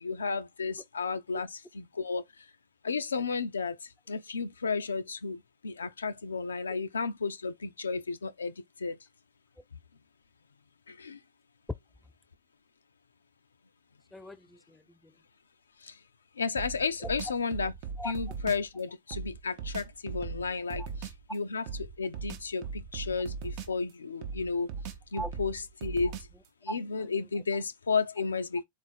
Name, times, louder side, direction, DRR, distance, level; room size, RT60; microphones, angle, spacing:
voice 1, 0.0-1.5 1.8-2.2 2.8-3.7 4.1-5.4 5.6-7.5 7.8-8.5 8.8-8.9 11.0-11.2 16.4-17.7 18.0-20.8 21.3-21.6 22.0-22.6 22.9-23.4 23.7-24.7 25.1-26.1 26.7-28.6, left 4 dB, 80° left, 0.3 m, -32 dB
voice 2, 14.1-15.1 17.0-17.1 18.0-18.1 20.8-20.9 25.1-25.3 26.7-27.2, equal, 5° left, 0.3 m, -41 dB
sound 1, 16.6-18.7 19.1-21.2 21.7-23.9 24.2-26.5, right 5 dB, 50° right, 0.6 m, -39 dB
3.8 x 2.4 x 3.9 m
figure-of-eight pair, 95°, 0 cm